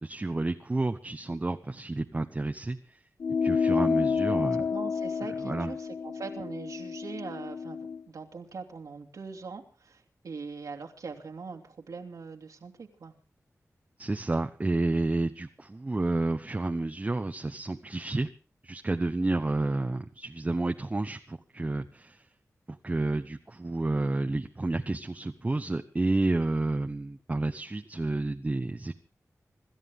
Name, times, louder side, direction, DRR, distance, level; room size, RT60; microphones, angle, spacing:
voice 1, 0.0-2.8 3.4-4.6 5.4-5.7 14.0-18.3 18.6-22.2 22.8-28.9, right 2 dB, 25° right, 5 dB, 1.0 m, -30 dB
sound 1, 3.2-8.0, left 5 dB, 85° left, 1.4 m, -29 dB
voice 2, 4.3-13.2, right 4 dB, 85° right, 3 dB, 2.6 m, -42 dB
26.0 x 13.5 x 3.8 m, 0.36 s
wide cardioid pair, 115°, 6 cm